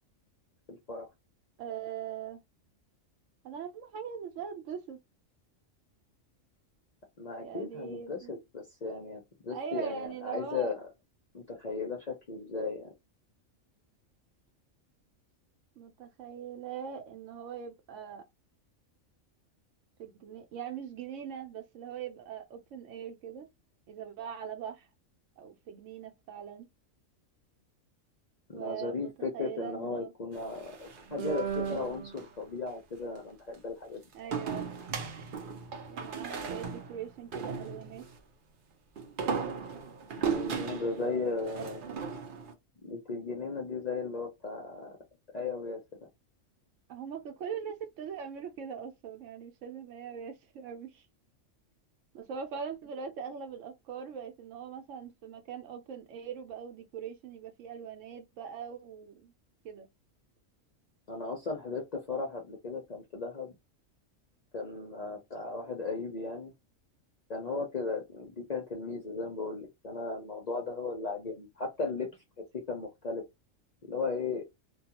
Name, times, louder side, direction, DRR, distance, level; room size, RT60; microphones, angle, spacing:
voice 1, 0.7-1.1 7.2-10.9 11.3-12.9 28.5-34.0 40.2-41.8 42.8-45.0 45.3-45.8 61.1-63.5 64.5-66.5 67.3-72.1 72.5-73.2 73.9-74.4, left 3 dB, 50° left, 0.5 m, -36 dB
voice 2, 1.6-2.4 3.4-5.0 7.4-8.4 9.5-10.8 15.8-18.2 20.0-23.5 23.9-24.9 25.4-26.7 28.5-30.1 34.1-34.7 35.9-38.1 41.0-42.0 46.9-51.1 52.1-59.3 59.6-59.9, right 7 dB, 75° right, 0.9 m, -41 dB
sound 1, 30.4-32.3 34.3-38.1 39.0-42.5, right 6 dB, 55° right, 0.6 m, -36 dB
2.3 x 2.2 x 2.8 m
omnidirectional pair, 1.4 m